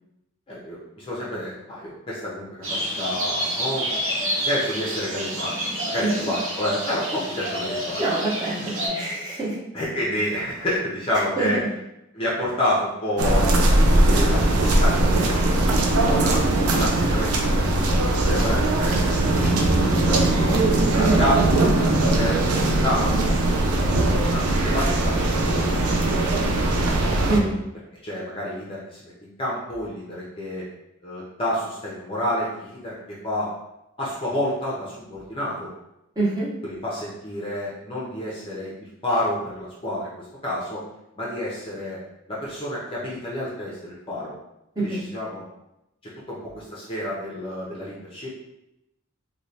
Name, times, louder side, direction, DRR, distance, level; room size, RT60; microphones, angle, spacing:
voice 1, 0.5-4.0 4.4-8.0 9.7-11.6 12.1-16.4 16.7-17.9 18.2-20.6 20.9-22.5 22.8-23.3 23.8-26.6 28.0-30.6 31.0-33.5 34.0-35.7 36.6-40.8 41.2-42.0 42.3-44.3 44.8-45.4 46.3-48.4, left 1 dB, 25° left, -6 dB, 0.5 m, -29 dB
sound 1, 2.6-8.9, equal, 65° right, 0.8 m, -29 dB
voice 2, 8.0-9.6 11.4-11.5 18.5-18.6 21.0-21.2 27.3-27.5 36.2-36.5 44.8-45.0, right 2 dB, 15° right, -8 dB, 0.7 m, -25 dB
sound 2, 13.2-27.4, right 2 dB, 85° right, 0.4 m, -20 dB
3.0 x 2.2 x 2.6 m, 0.88 s
head